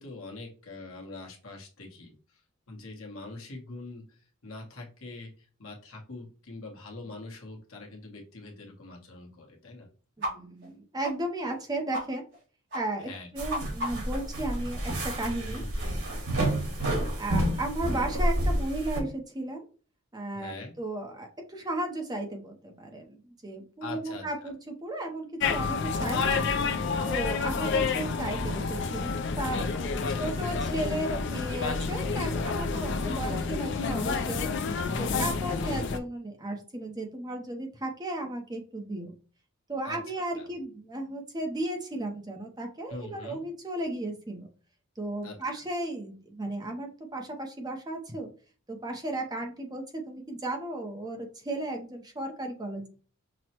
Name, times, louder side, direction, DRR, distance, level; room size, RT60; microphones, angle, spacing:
voice 1, 0.0-2.4 2.7-9.9 13.0-13.3 15.5-16.0 16.8-17.1 20.3-20.7 23.8-24.5 26.4-27.0 30.1-30.3 34.9-35.4 39.8-40.0 40.4-40.5 42.9-43.4 45.2-45.6, left 2 dB, 80° left, 0 dB, 1.1 m, -43 dB
voice 2, 10.2-12.2 12.7-15.6 17.2-19.6 20.1-26.5 27.1-29.7 30.2-34.5 35.0-39.1 39.7-44.5 45.0-48.3 48.7-52.9, right 1 dB, 20° right, 3 dB, 0.6 m, -35 dB
sound 1, 10.2-10.3 10.6-10.7 11.0-11.1 11.5-11.6 11.9-12.0 12.3-12.4 12.7-12.8 13.1-14.2, equal, 55° right, 2.1 m, -34 dB
sound 2, 13.4-19.0, right 1 dB, 85° right, 1.8 m, -29 dB
sound 3, 25.4-36.0, left 4 dB, 55° left, 0.4 m, -29 dB
6.0 x 2.1 x 2.9 m, 0.39 s
head